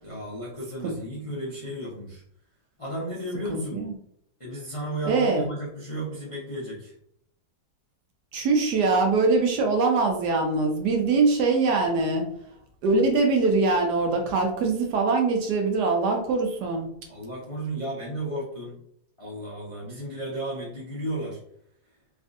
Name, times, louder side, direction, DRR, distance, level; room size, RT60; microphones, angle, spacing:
voice 1, 0.0-2.2 2.8-3.8 4.4-6.9 17.1-18.8 19.2-21.4, right 1 dB, 35° left, -7 dB, 0.5 m, -34 dB
voice 2, 3.5-3.9 5.0-5.4 8.3-12.2 12.8-16.9, right 3 dB, 70° right, 2 dB, 1.1 m, -23 dB
3.4 x 2.4 x 2.6 m, 0.70 s
omnidirectional pair, 2.0 m